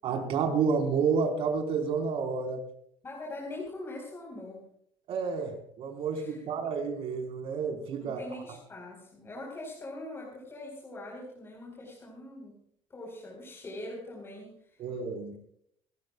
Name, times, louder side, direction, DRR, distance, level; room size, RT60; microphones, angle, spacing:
voice 1, 0.0-2.6 5.1-8.2 14.8-15.3, right 5 dB, 60° right, 3 dB, 4.8 m, -30 dB
voice 2, 3.0-4.6 6.1-6.5 8.0-12.5 12.9-14.8, left 2 dB, 20° left, -2 dB, 4.6 m, -42 dB
28.5 x 14.5 x 2.4 m, 0.67 s
cardioid pair, 150°, 11 cm